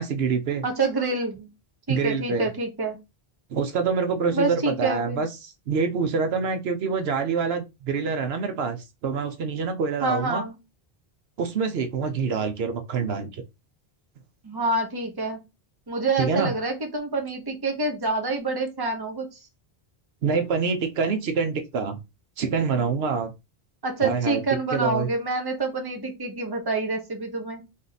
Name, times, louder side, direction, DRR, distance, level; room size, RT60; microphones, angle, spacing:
voice 1, 0.0-0.6 1.9-2.5 3.5-10.4 11.4-13.4 16.2-16.5 20.2-22.0 22.4-23.3 24.0-24.4 24.7-25.1, right 5 dB, 75° right, 0.9 m, -26 dB
voice 2, 0.6-1.5 1.9-3.0 4.3-5.2 10.0-10.6 14.4-15.4 15.9-19.3 23.8-27.6, right 3 dB, 25° right, 0.9 m, -27 dB
3.6 x 2.7 x 3.9 m
omnidirectional pair, 1.1 m